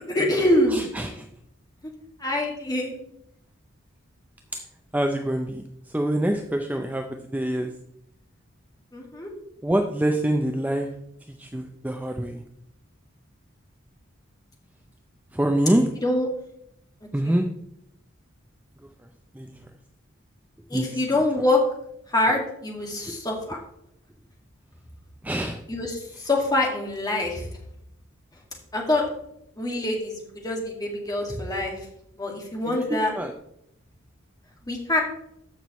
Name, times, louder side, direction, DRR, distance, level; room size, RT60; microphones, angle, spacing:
voice 1, 0.1-1.0 1.8-1.9 2.2-2.9 8.9-9.3 16.0-16.3 17.2-17.3 20.7-21.6 22.1-23.6 25.7-27.5 28.7-29.1 29.6-31.9 32.2-33.1 34.7-35.0, left 1 dB, 20° left, 0 dB, 2.0 m, -25 dB
voice 2, 0.7-1.3 4.9-5.6 5.9-7.7 9.6-10.9 11.4-12.4 15.3-15.8 17.1-17.5 19.4-19.6 20.7-20.9 25.2-25.6 32.8-32.9 33.2-33.3, right 1 dB, 10° right, 4 dB, 0.5 m, -25 dB
14.0 x 5.9 x 3.1 m, 0.76 s
head